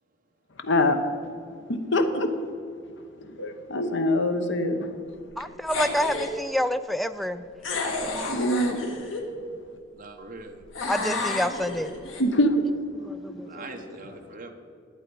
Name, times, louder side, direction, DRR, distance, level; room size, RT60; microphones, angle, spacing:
voice 1, 0.6-1.1 1.7-2.3 3.2-4.9 8.3-8.8 12.2-12.6 13.4-14.0, left 1 dB, 65° left, 7 dB, 1.0 m, -25 dB
voice 2, 5.4-7.5 10.9-11.9 13.0-13.7, equal, ahead, 11 dB, 0.3 m, -28 dB
sound 1, 5.7-6.4 7.6-9.3 10.7-12.2, left 3 dB, 90° left, 1.7 m, -31 dB
voice 3, 9.9-10.6 13.4-14.5, right 3 dB, 45° right, 3 dB, 1.0 m, -42 dB
11.0 x 8.6 x 5.4 m, 2.3 s
head